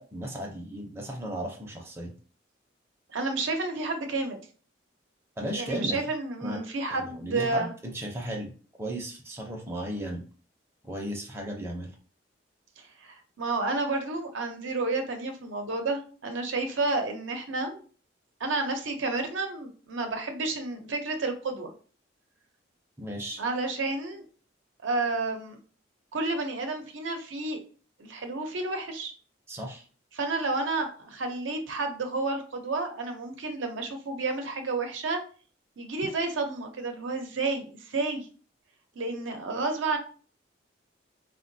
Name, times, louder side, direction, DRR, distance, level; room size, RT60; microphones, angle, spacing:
voice 1, 0.0-2.1 5.4-6.0 6.4-6.6 6.9-8.5 8.8-10.2 10.8-11.9 23.0-23.4 29.5-29.8, right 1 dB, 15° right, 0 dB, 0.5 m, -35 dB
voice 2, 3.1-4.4 5.6-7.7 12.8-17.8 18.4-21.7 23.4-24.2 24.8-25.6 26.1-27.6 28.0-29.1 30.1-35.2 35.8-38.3 39.0-40.0, right 3 dB, 75° right, 5 dB, 0.6 m, -30 dB
3.6 x 2.2 x 2.6 m, 0.40 s
head